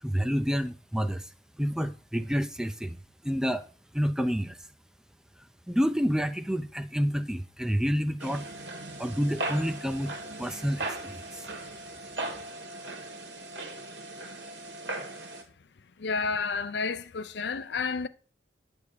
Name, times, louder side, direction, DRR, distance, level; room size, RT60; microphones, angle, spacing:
voice 1, 0.0-1.3 1.6-3.0 3.2-3.7 3.9-4.6 5.7-8.5 9.0-10.1 10.4-11.5, equal, 5° right, 0.4 m, -29 dB
sound 1, 8.2-15.4, right 2 dB, 85° right, 1.8 m, -38 dB
voice 2, 16.0-18.1, left 4 dB, 75° left, 0.5 m, -30 dB
9.6 x 3.5 x 6.6 m
head